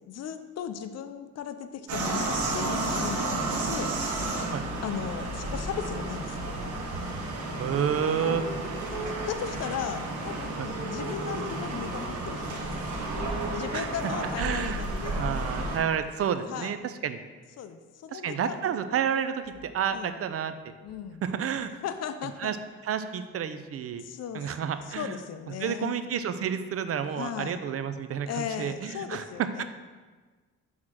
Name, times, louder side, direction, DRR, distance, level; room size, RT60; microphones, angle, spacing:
voice 1, 0.1-3.9 4.8-6.4 8.2-8.4 8.9-12.7 13.5-15.8 16.5-16.7 17.6-18.6 19.9-20.1 20.8-21.2 21.8-22.5 24.0-26.0 27.2-27.6 28.3-29.6, left 8 dB, 55° left, 9 dB, 0.6 m, -37 dB
sound 1, 1.9-15.8, right 2 dB, 75° right, 1.5 m, -32 dB
voice 2, 7.6-8.4 10.6-10.7 13.7-13.9 14.4-14.8 15.2-17.2 18.1-20.7 21.2-21.7 22.4-22.6 22.8-24.0 24.3-25.2 25.6-29.6, right 8 dB, 50° right, 10 dB, 0.5 m, -30 dB
6.3 x 3.7 x 6.2 m, 1.4 s
cardioid pair, 90°, 30 cm